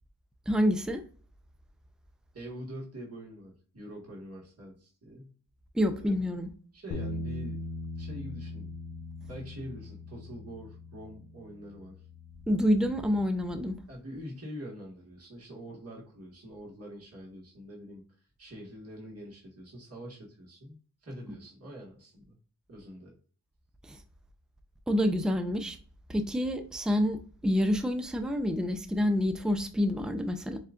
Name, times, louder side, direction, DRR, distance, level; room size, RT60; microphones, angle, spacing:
voice 1, 0.5-1.0 5.7-6.5 12.5-13.8 23.9-24.0 24.9-25.8 26.1-27.2 27.4-30.6, equal, ahead, 0.6 m, -27 dB
voice 2, 2.3-5.4 5.9-6.2 6.7-7.6 7.9-8.7 9.3-12.0 13.9-18.0 18.4-22.4 22.7-23.1, equal, 45° right, 1.7 m, -45 dB
sound 1, 6.9-13.2, left 2 dB, 50° left, 0.6 m, -41 dB
7.2 x 2.4 x 2.5 m
cardioid pair, 45°, 35 cm